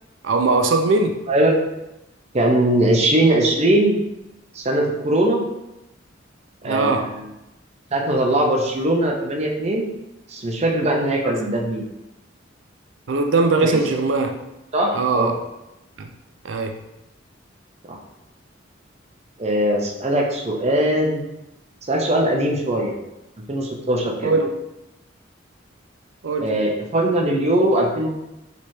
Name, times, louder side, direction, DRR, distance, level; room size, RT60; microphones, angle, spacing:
voice 1, 0.2-1.2 6.6-7.1 11.2-11.3 13.1-14.3 14.9-15.3 16.0-16.1 16.4-16.8 24.2-24.5 26.2-26.5, right 3 dB, 90° right, 5 dB, 0.5 m, -20 dB
voice 2, 1.3-1.7 2.3-4.0 4.5-5.4 6.6-7.3 7.9-10.0 10.3-11.8 13.6-13.8 14.7-15.4 17.9-18.0 19.4-21.2 21.9-23.0 23.5-24.3 26.4-28.1, right 1 dB, 35° right, 1 dB, 0.7 m, -20 dB
3.4 x 3.1 x 4.3 m, 0.92 s
head